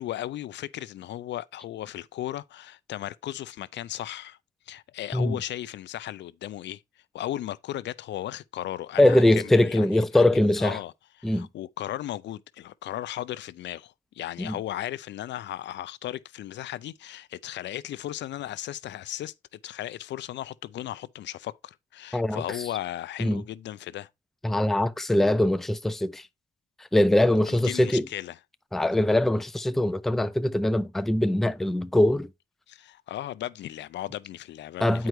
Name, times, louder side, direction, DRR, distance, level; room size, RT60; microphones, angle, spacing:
voice 1, 0.0-4.4 4.7-6.8 7.1-10.9 11.2-19.3 19.6-24.1 27.5-28.4 32.7-35.1, left 13 dB, 65° left, 0.4 m, -36 dB
voice 2, 9.0-10.8 11.2-11.5 14.4-14.6 22.1-22.4 23.2-23.4 24.4-26.2 26.9-28.1 28.7-32.3 34.8-35.1, left 1 dB, ahead, 0.4 m, -22 dB
8.9 x 4.7 x 3.1 m
cardioid pair, 90°, 20 cm